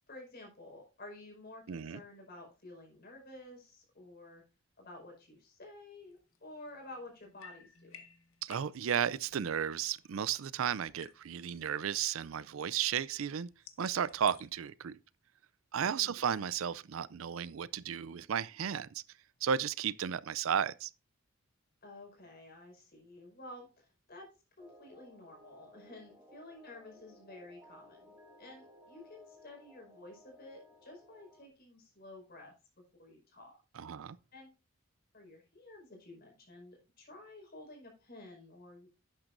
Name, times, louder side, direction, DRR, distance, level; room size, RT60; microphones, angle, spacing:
voice 1, 0.1-4.4 4.8-8.0 15.8-16.2 21.8-24.3 24.6-32.5 33.0-33.5 34.3-34.5 35.1-38.9, left 2 dB, 45° left, 5.1 m, -52 dB
voice 2, 1.7-2.0 8.4-13.5 13.8-15.0 15.7-19.0 19.4-20.9 33.7-34.2, right 8 dB, 70° right, 0.4 m, -34 dB
sound 1, 6.1-10.6 10.8-14.6, left 7 dB, 85° left, 1.4 m, -58 dB
sound 2, 24.6-31.5, left 1 dB, 15° right, 2.1 m, -59 dB
11.5 x 8.9 x 2.6 m
head